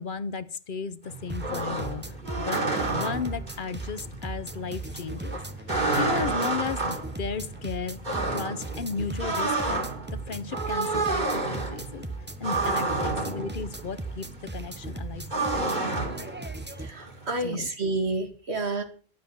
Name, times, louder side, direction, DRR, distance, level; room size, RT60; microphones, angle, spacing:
voice 1, 0.0-2.6 2.9-5.4 6.0-8.0 8.3-12.1 12.4-15.9 17.4-17.7, left 5 dB, 55° left, 0.9 m, -35 dB
sound 1, 1.0-17.4, right 3 dB, 45° right, 2.6 m, -30 dB
sound 2, 1.3-16.9, right 3 dB, 10° right, 0.8 m, -38 dB
voice 2, 16.8-18.8, right 2 dB, 90° right, 2.3 m, -29 dB
11.5 x 7.8 x 6.9 m
omnidirectional pair, 1.1 m